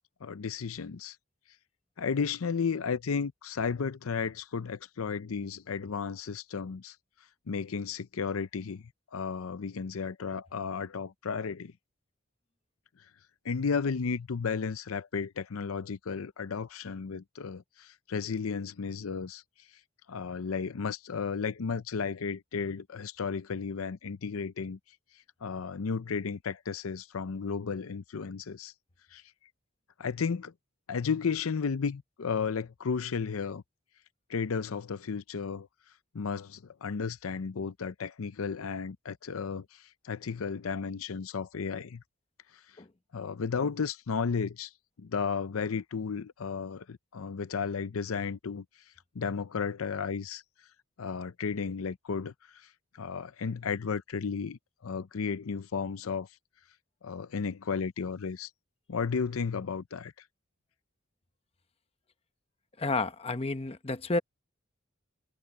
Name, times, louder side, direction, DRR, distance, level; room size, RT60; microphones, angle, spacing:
voice 1, 0.2-1.2 2.0-7.0 7.5-11.7 13.4-19.4 20.1-24.8 25.4-28.7 29.1-29.2 30.0-30.5 30.9-33.6 34.3-35.7 36.1-42.0 42.5-42.6 43.1-44.7 45.0-48.6 49.1-50.4 51.0-52.7 52.9-56.3 57.0-58.5 58.9-60.1, left 5 dB, 85° left, 0.6 m, -33 dB
voice 2, 62.8-64.2, left 2 dB, 30° left, 0.9 m, -31 dB
head